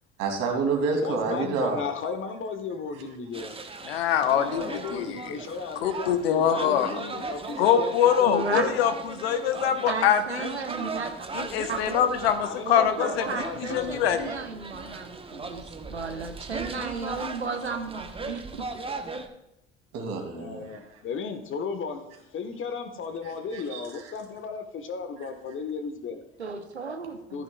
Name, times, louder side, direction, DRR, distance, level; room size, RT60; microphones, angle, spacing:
voice 1, 0.2-1.8 19.9-20.6 23.5-24.1, right 4 dB, 55° right, 2 dB, 2.6 m, -28 dB
voice 2, 1.0-3.5 4.2-7.9 8.2-8.9 12.4-14.3 20.3-22.0 22.3-26.2 27.3-27.4, left 5 dB, 40° left, 8 dB, 1.3 m, -35 dB
sound 1, 3.3-19.3, right 3 dB, 15° right, 1.0 m, -38 dB
voice 3, 3.8-5.4 5.8-7.0 7.6-10.6 11.3-13.3 13.6-14.3, left 9 dB, 70° left, 10 dB, 0.9 m, -24 dB
voice 4, 8.3-8.7 9.9-12.4 12.7-18.7 26.4-27.4, right 4 dB, 90° right, 6 dB, 0.8 m, -34 dB
14.0 x 8.5 x 2.3 m, 0.82 s
figure-of-eight pair, 55°, 32 cm